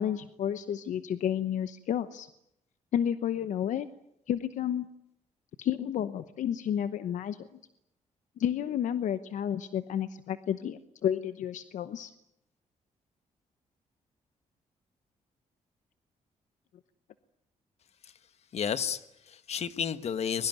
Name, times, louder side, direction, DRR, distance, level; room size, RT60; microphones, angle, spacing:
voice 1, 0.0-2.3 2.9-3.9 4.3-4.9 5.6-7.5 8.4-12.1, left 9 dB, 75° left, 12 dB, 0.9 m, -31 dB
voice 2, 18.5-20.5, left 7 dB, 55° left, 13 dB, 1.4 m, -32 dB
22.0 x 21.5 x 9.2 m, 0.80 s
cardioid pair, 120°, 13 cm